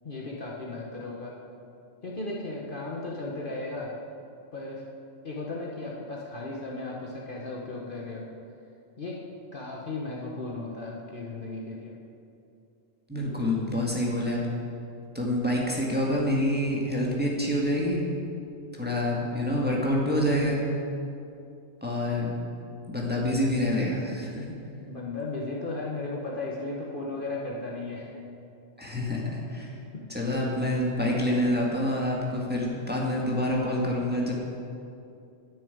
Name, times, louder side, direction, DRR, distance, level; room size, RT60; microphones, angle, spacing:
voice 1, 0.0-1.3 2.0-3.9 4.5-4.8 5.2-8.2 9.0-9.2 9.5-11.9 24.9-28.1 29.9-30.0, left 2 dB, 45° left, -3 dB, 1.3 m, -35 dB
voice 2, 13.1-14.4 15.1-18.0 18.7-20.6 21.8-22.4 22.9-24.4 28.8-29.7 30.1-34.3, left 1 dB, 10° right, -3 dB, 1.8 m, -27 dB
10.0 x 7.2 x 8.4 m, 2.6 s
omnidirectional pair, 1.3 m